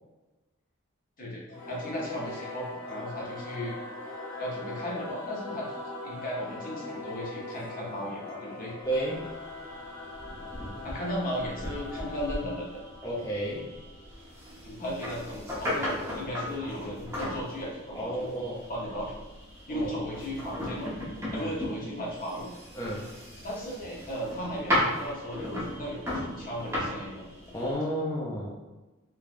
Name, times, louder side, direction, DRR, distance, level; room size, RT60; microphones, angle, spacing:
voice 1, 1.2-3.8 4.4-8.7 10.8-12.8 14.6-18.3 18.7-19.1 19.7-20.9 21.3-22.5 23.4-27.2, equal, 45° left, -3 dB, 0.7 m, -36 dB
Singing / Musical instrument, 1.5-14.4, left 2 dB, 80° left, 1.3 m, -41 dB
voice 2, 8.8-9.3 13.0-13.6 17.9-18.7 19.7-19.9 21.3-21.5 22.7-23.1 27.5-28.6, right 1 dB, 15° left, -6 dB, 0.4 m, -32 dB
sound 1, 8.8-27.8, left 1 dB, 15° right, 0.8 m, -36 dB
3.3 x 2.2 x 2.4 m, 1.1 s
head